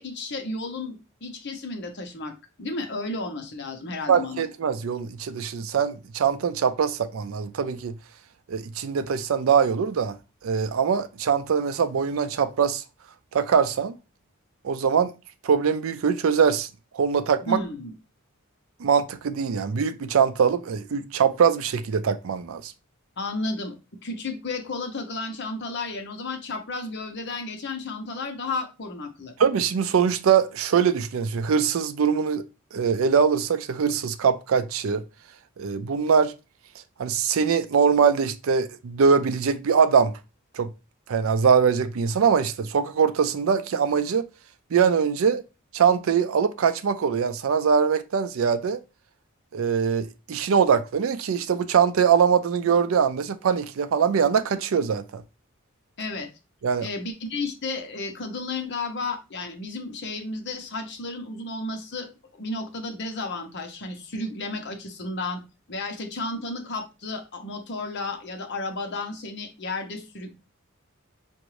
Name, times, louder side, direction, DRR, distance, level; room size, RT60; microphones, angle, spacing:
voice 1, 0.0-2.3 2.6-4.4 17.5-17.9 23.2-23.7 24.0-29.3 56.0-56.3 56.8-65.4 65.7-70.3, left 3 dB, 55° left, 0.9 m, -33 dB
voice 2, 4.1-7.9 8.5-10.2 10.4-12.8 13.3-14.0 14.6-15.1 15.4-16.7 16.9-17.6 18.8-22.7 29.4-32.4 32.7-35.0 35.6-36.3 37.0-40.1 40.5-40.7 41.1-44.2 44.7-45.4 45.7-48.8 49.5-55.2 56.6-56.9, right 6 dB, 75° right, 0.4 m, -22 dB
5.8 x 2.6 x 3.1 m
head